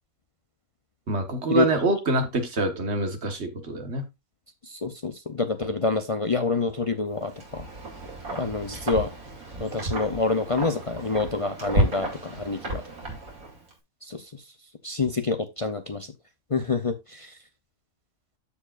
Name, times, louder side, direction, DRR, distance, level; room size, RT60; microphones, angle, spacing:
voice 1, 1.1-4.1, right 2 dB, 50° right, 1.6 m, -26 dB
voice 2, 4.7-7.7 8.3-9.1 9.6-12.8 14.1-14.2 14.8-16.1 16.5-17.3, left 4 dB, 40° left, 0.4 m, -27 dB
Wind, 7.2-13.7, right 1 dB, 75° right, 3.1 m, -32 dB
14.0 x 4.8 x 2.4 m
omnidirectional pair, 1.5 m